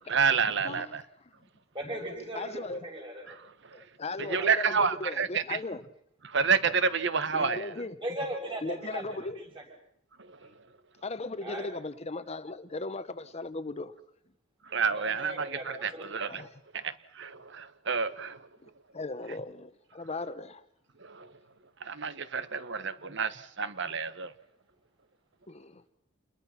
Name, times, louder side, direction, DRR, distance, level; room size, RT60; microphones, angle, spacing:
voice 1, 0.1-1.0 4.3-5.6 6.3-7.7 14.7-16.4 16.7-18.4 21.0-21.3 21.8-24.3, right 5 dB, 65° right, 1.2 m, -29 dB
voice 2, 0.6-1.0 2.3-2.9 3.7-5.8 7.3-8.0 8.6-9.4 11.0-13.9 16.3-16.6 18.6-20.6 23.1-23.2 25.5-25.8, left 3 dB, 35° left, 0.9 m, -37 dB
voice 3, 1.7-3.2 4.1-4.6 8.0-9.6 10.4-10.6 11.4-11.7 14.8-16.0, right 1 dB, 25° right, 7.2 m, -38 dB
28.5 x 21.0 x 5.8 m
head